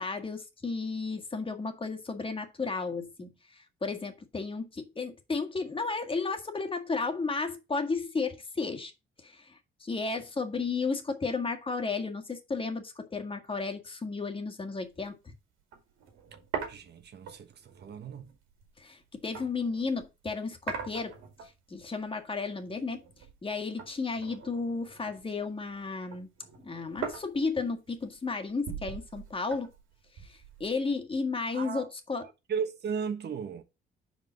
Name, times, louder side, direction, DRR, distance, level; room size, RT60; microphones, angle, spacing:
voice 1, 0.0-8.9 9.2-15.3 18.8-21.1 21.4-23.0 23.4-26.3 26.6-29.7 30.2-32.3, left 4 dB, 25° left, 1.7 m, -33 dB
sound 1, 14.8-15.0 15.3-15.4 15.7-20.1 20.7-21.8 22.1-23.5 23.8-25.5 25.8-31.0, right 7 dB, 90° right, 2.5 m, -42 dB
voice 2, 16.7-18.3 31.5-31.9 32.2-33.6, right 6 dB, 55° right, 1.3 m, -36 dB
5.4 x 5.1 x 6.2 m
cardioid pair, 90°, 20 cm